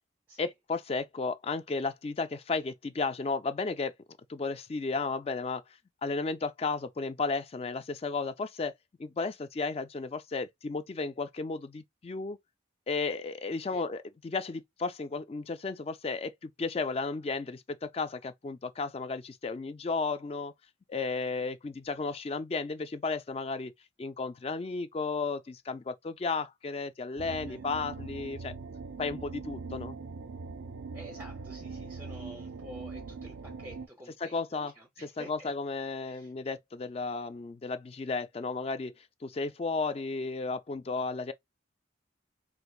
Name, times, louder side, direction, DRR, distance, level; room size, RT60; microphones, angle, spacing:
voice 1, 0.4-3.9 4.3-5.6 6.0-8.7 9.0-12.4 12.9-20.5 20.9-23.7 24.0-28.5 29.0-30.0 34.2-34.7 35.2-41.3, left 4 dB, 30° left, 0.3 m, -34 dB
sound 1, 27.2-33.9, right 4 dB, 80° right, 0.4 m, -42 dB
voice 2, 27.3-27.7 30.9-35.5 36.1-36.3, right 1 dB, 10° right, 0.6 m, -50 dB
4.4 x 2.5 x 2.3 m
head